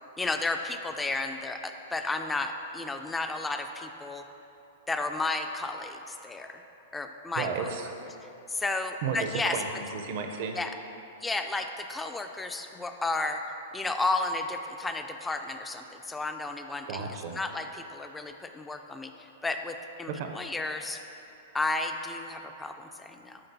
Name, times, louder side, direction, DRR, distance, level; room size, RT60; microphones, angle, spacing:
voice 1, 0.2-4.2 4.9-6.6 6.9-7.5 8.5-9.6 10.6-10.7 11.2-13.4 13.7-17.0 17.4-21.0 21.5-23.4, left 3 dB, 10° left, 6 dB, 0.3 m, -32 dB
voice 2, 7.3-7.9 9.0-10.6 16.9-17.4 20.1-20.3, right 6 dB, 55° right, 4 dB, 0.6 m, -33 dB
9.7 x 3.8 x 2.7 m, 2.9 s
hypercardioid pair, 110°, 0 cm